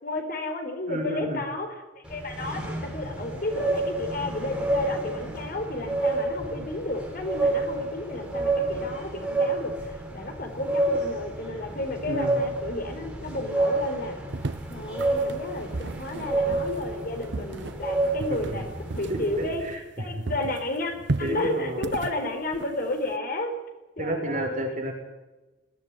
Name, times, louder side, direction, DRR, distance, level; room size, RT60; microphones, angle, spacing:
voice 1, 0.0-1.7 2.0-14.2 14.7-18.7 18.9-19.6 20.0-23.5 24.0-24.8, left 2 dB, 50° left, 5 dB, 4.2 m, -32 dB
voice 2, 0.9-1.4 12.1-12.4 18.3-18.6 19.1-19.8 20.1-20.3 21.2-21.9 24.0-24.9, right 1 dB, 40° right, 1 dB, 6.5 m, -31 dB
sound 1, 2.0-19.5, right 2 dB, 5° right, 5.1 m, -29 dB
sound 2, 14.3-20.0 20.3-23.2, right 3 dB, 65° right, 0.7 m, -35 dB
21.5 x 16.0 x 9.8 m, 1.1 s
head